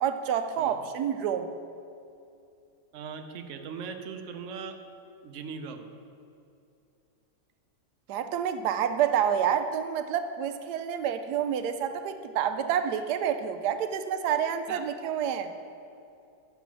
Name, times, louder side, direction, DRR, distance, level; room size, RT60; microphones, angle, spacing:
voice 1, 0.0-1.5 8.1-15.5, right 8 dB, 90° right, 9 dB, 1.2 m, -28 dB
voice 2, 2.9-4.8 5.2-5.9 14.7-14.8, right 6 dB, 60° right, 6 dB, 0.9 m, -39 dB
7.5 x 7.0 x 6.0 m, 2.6 s
omnidirectional pair, 1.7 m